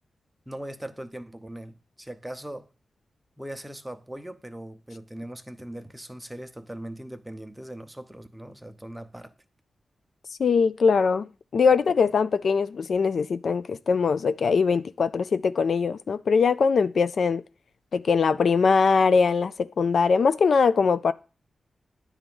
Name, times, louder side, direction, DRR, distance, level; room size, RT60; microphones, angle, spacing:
voice 1, 0.5-2.7 3.4-9.3, right 1 dB, 10° right, 0.8 m, -40 dB
voice 2, 10.4-17.4 17.9-21.1, left 5 dB, 75° left, 0.3 m, -22 dB
9.8 x 3.5 x 6.9 m
cardioid pair, 75°, 0 cm